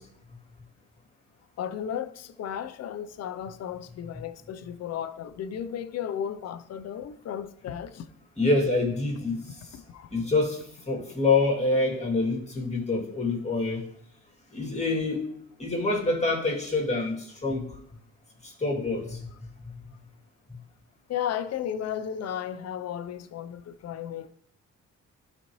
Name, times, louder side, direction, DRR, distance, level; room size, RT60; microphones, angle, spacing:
voice 1, 1.6-8.1 9.7-10.2 19.0-19.1 21.1-24.3, left 9 dB, 55° left, 0.6 m, -34 dB
voice 2, 8.4-9.4 10.1-10.6 10.9-13.8 14.5-15.2 15.6-17.7 18.4-19.2, left 3 dB, 20° left, 2.4 m, -26 dB
12.0 x 4.3 x 3.1 m
cardioid pair, 90°, 30 cm